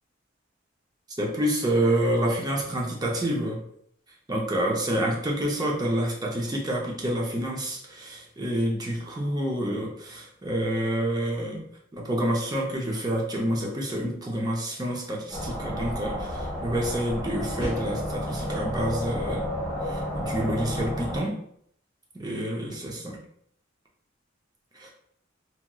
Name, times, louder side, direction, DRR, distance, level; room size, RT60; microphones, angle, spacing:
voice 1, 1.2-3.6 4.3-11.6 11.9-19.5 19.9-21.3 22.1-23.2 24.8-24.9, right 1 dB, 20° right, -2 dB, 0.6 m, -28 dB
sound 1, 15.3-21.2, equal, 5° left, 1.4 m, -31 dB
2.9 x 2.8 x 2.3 m, 0.68 s
head